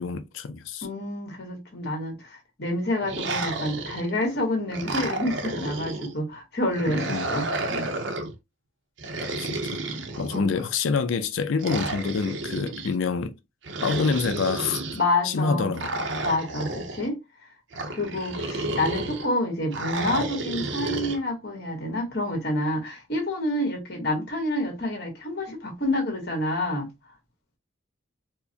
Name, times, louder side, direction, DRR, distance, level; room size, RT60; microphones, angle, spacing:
voice 1, 0.0-0.9 6.9-7.3 9.2-9.8 10.2-13.4 13.8-14.8 15.2-16.0, left 4 dB, 85° left, 0.4 m, -27 dB
voice 2, 0.8-8.0 10.3-10.5 14.9-15.7 16.2-17.2 17.9-26.9, left 1 dB, 55° left, 1.4 m, -28 dB
sound 1, 3.0-4.2 4.7-6.1 6.7-8.3 9.0-10.7 11.6-12.9 13.6-15.0 15.7-17.1 17.7-19.3 19.7-21.2, right 2 dB, 75° right, 0.7 m, -31 dB
4.5 x 2.1 x 2.7 m
head